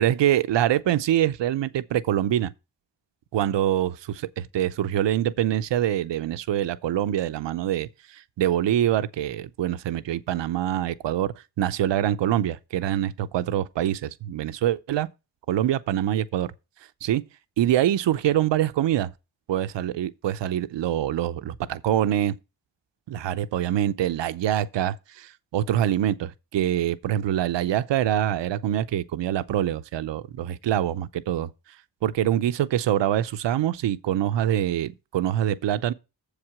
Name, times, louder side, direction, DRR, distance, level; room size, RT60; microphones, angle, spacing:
voice 1, 0.0-2.5 3.3-3.9 4.4-15.1 15.5-16.5 17.0-17.2 17.6-19.1 19.5-22.3 23.1-31.5 32.0-35.9, right 11 dB, 85° right, 0.7 m, -25 dB
7.2 x 4.9 x 7.2 m
cardioid pair, 45°, 42 cm